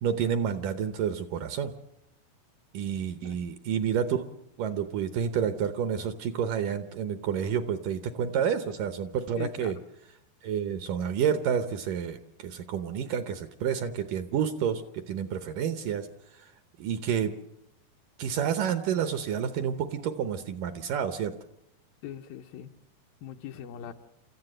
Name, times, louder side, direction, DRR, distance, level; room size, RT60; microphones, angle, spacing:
voice 1, 0.0-1.7 2.7-4.3 4.6-9.8 10.4-16.1 16.3-16.5 16.8-17.4 18.2-21.3, right 8 dB, 70° right, 10 dB, 2.2 m, -29 dB
voice 2, 9.4-9.7 22.0-22.7 23.2-23.9, left 10 dB, 70° left, 6 dB, 2.5 m, -41 dB
29.5 x 14.5 x 7.8 m, 0.84 s
omnidirectional pair, 4.5 m